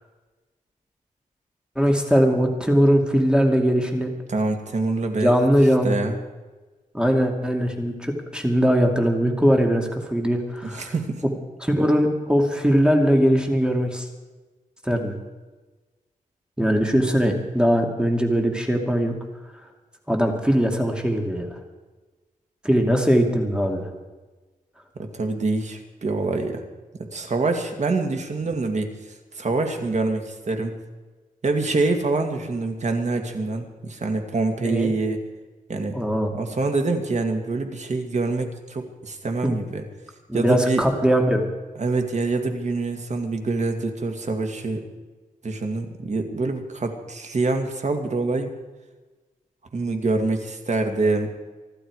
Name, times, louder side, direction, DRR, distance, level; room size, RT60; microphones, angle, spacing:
voice 1, 1.8-4.1 5.2-5.9 6.9-10.9 11.6-14.1 14.8-15.1 16.6-19.1 20.1-21.6 22.6-23.9 34.6-34.9 35.9-36.3 39.4-39.5 40.3-41.5, equal, 5° right, 3 dB, 2.5 m, -20 dB
voice 2, 4.3-5.4 5.8-6.2 10.6-11.2 25.0-26.6 26.9-28.9 29.3-30.8 31.4-35.2 35.7-36.0 36.3-39.8 40.3-40.8 41.8-44.8 45.4-48.5 49.7-51.3, right 3 dB, 55° right, 5 dB, 2.3 m, -25 dB
25.0 x 12.0 x 4.9 m, 1.2 s
wide cardioid pair, 95°, 14 cm